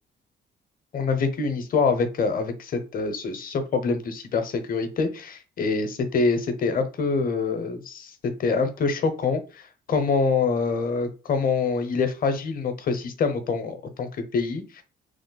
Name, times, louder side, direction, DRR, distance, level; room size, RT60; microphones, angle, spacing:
voice 1, 0.9-14.8, left 4 dB, 45° left, 8 dB, 0.7 m, -25 dB
3.1 x 2.0 x 3.9 m, 0.33 s
cardioid pair, 90°, 20 cm